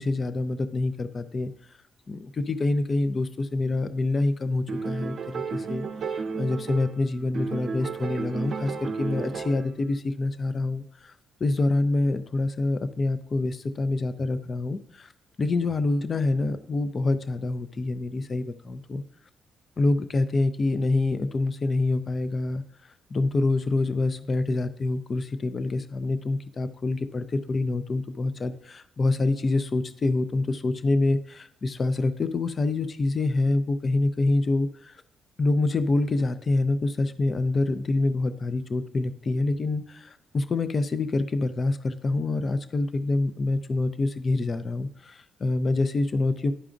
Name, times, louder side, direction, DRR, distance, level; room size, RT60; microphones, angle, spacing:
voice 1, 0.0-1.5 2.1-5.8 6.1-11.1 11.4-15.1 15.4-19.0 19.8-22.6 23.1-35.0 35.4-46.5, left 2 dB, 40° left, 12 dB, 0.5 m, -26 dB
sound 1, 4.7-7.0 7.3-9.8, right 5 dB, 55° right, 0.5 m, -32 dB
11.0 x 4.8 x 2.5 m, 0.72 s
cardioid pair, 90°, 0 cm